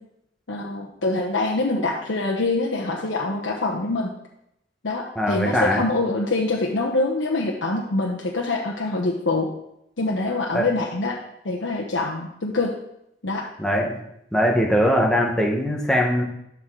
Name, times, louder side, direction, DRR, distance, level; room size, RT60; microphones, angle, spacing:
voice 1, 0.5-4.1 4.8-9.5 10.0-11.2 11.4-12.7 13.2-13.4, left 2 dB, 85° left, -1 dB, 1.0 m, -25 dB
voice 2, 5.1-5.8 10.5-10.7 13.6-14.0 14.3-16.2, equal, 5° left, -1 dB, 1.3 m, -21 dB
12.0 x 4.7 x 3.9 m, 0.80 s
head